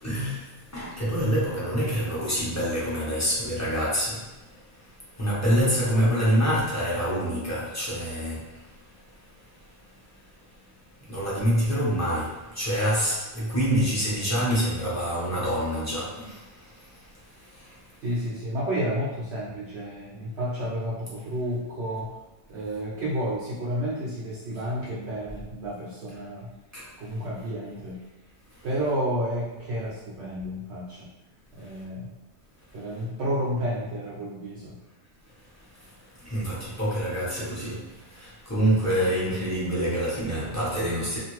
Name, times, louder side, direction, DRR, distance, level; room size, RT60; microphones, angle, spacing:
voice 1, 0.0-4.2 5.1-8.5 11.1-16.7 17.5-17.7 26.7-26.9 36.2-41.2, equal, 15° left, -8 dB, 0.7 m, -26 dB
voice 2, 5.8-6.6 18.0-22.2 22.5-26.5 27.0-28.0 28.6-31.1 31.5-32.1 32.7-34.8, equal, 60° right, -6 dB, 0.7 m, -31 dB
2.5 x 2.5 x 3.0 m, 1.1 s
omnidirectional pair, 1.5 m